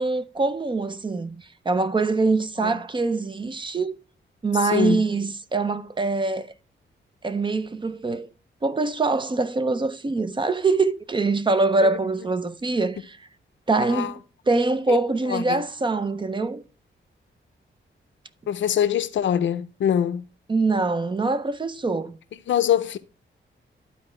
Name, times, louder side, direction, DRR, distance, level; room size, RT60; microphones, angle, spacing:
voice 1, 0.0-4.0 4.4-6.5 7.2-8.3 8.6-13.2 13.7-14.2 14.5-16.6 20.5-22.2, right 3 dB, 25° right, 0.5 m, -24 dB
voice 2, 4.6-5.0 11.8-11.9 13.8-14.1 14.9-15.0 15.3-15.6 18.5-20.2 22.5-23.0, left 9 dB, 70° left, 0.5 m, -23 dB
12.0 x 4.4 x 3.2 m
wide cardioid pair, 115°, 20 cm